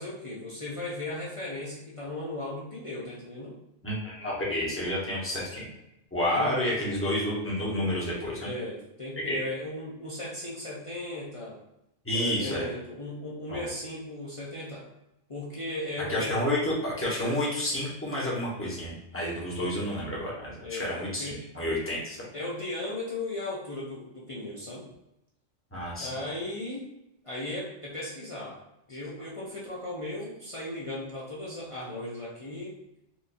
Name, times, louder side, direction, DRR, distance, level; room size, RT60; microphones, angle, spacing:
voice 1, 0.0-3.5 6.4-6.6 8.4-11.6 12.1-14.9 15.3-16.3 20.6-21.4 22.3-24.9 26.0-26.9 27.2-28.6 28.9-32.8, left 1 dB, 35° left, -7 dB, 0.6 m, -36 dB
voice 2, 3.8-5.7 6.1-8.5 9.3-9.4 12.0-12.6 13.5-13.6 16.1-22.2 25.7-26.1, left 1 dB, 10° left, -6 dB, 1.0 m, -30 dB
4.4 x 2.5 x 2.6 m, 0.84 s
omnidirectional pair, 1.2 m